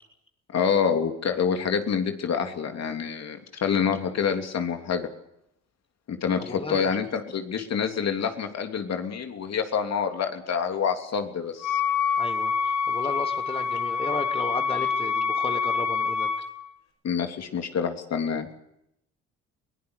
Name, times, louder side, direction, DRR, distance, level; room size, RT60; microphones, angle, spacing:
voice 1, 0.5-5.1 6.1-11.8 17.0-18.5, left 6 dB, 60° left, 5 dB, 3.2 m, -27 dB
voice 2, 6.4-6.9 12.2-16.3, left 3 dB, 20° left, 6 dB, 2.6 m, -34 dB
Wind instrument woodwind instrument, 11.6-16.5, left 6 dB, 85° left, 5.4 m, -26 dB
22.5 x 17.5 x 9.8 m, 0.78 s
cardioid pair, 90°, 30 cm